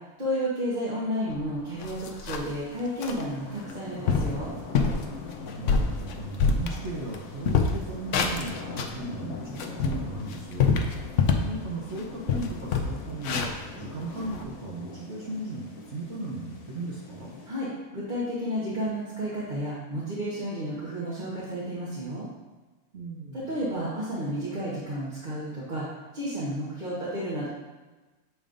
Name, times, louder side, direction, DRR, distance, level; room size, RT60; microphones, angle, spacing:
voice 1, 0.2-4.5 17.4-22.3 23.3-25.9 26.1-27.5, equal, 35° right, -8 dB, 1.1 m, -32 dB
sound 1, 1.3-1.4 1.8-2.6 3.0-3.2 3.7-3.8 4.1-4.4 4.7-5.0 5.5-7.2 7.4-9.0 9.4-11.6 11.9-12.0 12.3-14.4, left 5 dB, 65° left, 0.8 m, -26 dB
sound 2, 2.3-17.5, left 4 dB, 85° left, 1.4 m, -43 dB
voice 2, 5.4-9.4 9.7-10.8 11.4-17.3 22.9-23.5, right 2 dB, 55° right, -3 dB, 1.0 m, -36 dB
7.6 x 5.2 x 2.5 m, 1.2 s
omnidirectional pair, 1.6 m